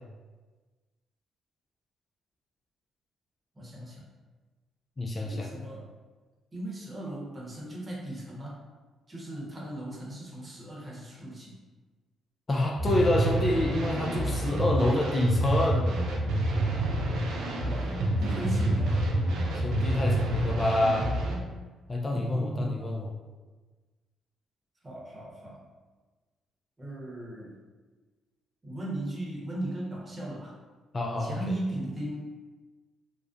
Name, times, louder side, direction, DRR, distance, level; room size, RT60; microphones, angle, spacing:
voice 1, 3.5-4.0 5.2-5.9 6.5-8.6 9.1-11.5 17.6-19.1 22.1-22.9 24.8-25.6 26.8-27.6 28.6-30.6 31.2-32.3, right 1 dB, 30° right, -4 dB, 0.9 m, -37 dB
voice 2, 5.0-5.5 12.5-15.9 19.5-21.1 21.9-23.1 30.9-31.5, left 1 dB, 35° left, 0 dB, 0.3 m, -27 dB
sound 1, 12.8-21.4, right 1 dB, 75° right, 0.4 m, -28 dB
2.3 x 2.1 x 2.5 m, 1.3 s
supercardioid pair, 60°, 0 cm